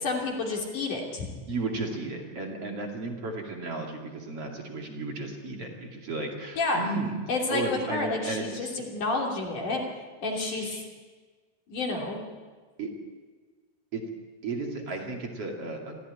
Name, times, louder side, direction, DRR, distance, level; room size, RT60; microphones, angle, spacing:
voice 1, 0.0-1.3 6.6-6.8 7.3-9.8 10.2-10.7 11.7-12.3, left 3 dB, 45° left, 0 dB, 4.0 m, -30 dB
voice 2, 1.5-7.2 7.5-8.8 10.3-10.9 12.8-12.9 13.9-14.1 14.4-16.0, right 3 dB, 40° right, 1 dB, 2.7 m, -34 dB
25.5 x 15.5 x 9.8 m, 1.4 s
omnidirectional pair, 5.5 m